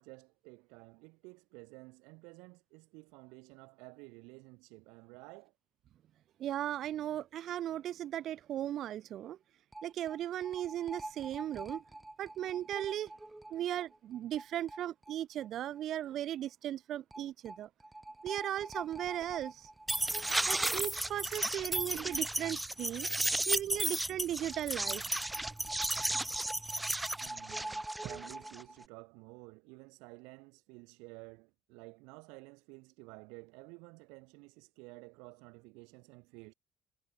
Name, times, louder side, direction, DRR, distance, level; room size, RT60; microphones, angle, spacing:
voice 1, 0.0-5.5 27.2-36.5, right 29 dB, 80° right, 2.1 m, -53 dB
voice 2, 6.4-9.4 9.8-11.8 12.2-13.1 13.5-17.7 18.2-19.7 20.5-23.1 23.5-25.5, right 12 dB, 60° right, 0.8 m, -37 dB
sound 1, 9.7-9.8 10.1-10.2 10.4-13.6 14.4-14.5 14.7-14.8 15.1-15.2 17.1-17.2 17.5-17.6 17.8-28.8, right 1 dB, 10° right, 0.5 m, -35 dB
hypercardioid pair, 70°, 0 cm